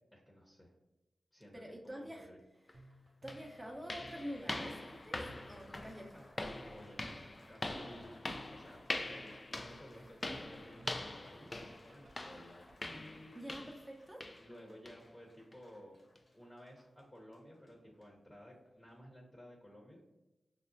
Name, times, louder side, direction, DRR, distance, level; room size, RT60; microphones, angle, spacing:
voice 1, 0.1-0.7 1.3-2.4 6.7-7.2 7.5-8.8 9.1-13.4 14.4-16.0 16.3-20.0, equal, 20° left, -2 dB, 0.9 m, -55 dB
voice 2, 1.5-2.3 3.2-5.2 5.5-6.4 13.3-14.2, equal, 10° right, -1 dB, 0.8 m, -47 dB
sound 1, 2.7-2.8 3.3-13.9 14.2-14.5 14.9-15.0 15.5-15.6 16.2-16.3, left 2 dB, 40° left, 0.4 m, -43 dB
sound 2, 2.7-12.7, right 1 dB, 60° right, 0.6 m, -60 dB
Applause, 4.4-19.0, left 1 dB, 55° left, 1.0 m, -67 dB
5.9 x 2.0 x 2.6 m, 1.0 s
cardioid pair, 45°, 0 cm